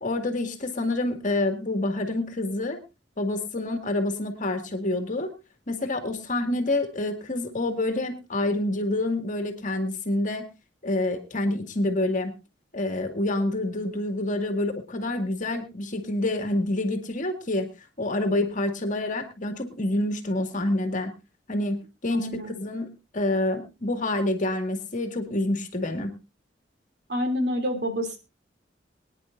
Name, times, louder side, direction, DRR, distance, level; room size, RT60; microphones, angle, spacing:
voice 1, 0.0-2.8 3.2-5.3 5.7-10.5 10.8-12.3 12.7-17.7 18.0-21.1 21.5-26.1, left 2 dB, 45° left, 6 dB, 2.0 m, -27 dB
voice 2, 22.2-22.5 27.1-28.2, equal, 65° right, 5 dB, 2.8 m, -27 dB
23.5 x 10.0 x 2.6 m, 0.26 s
head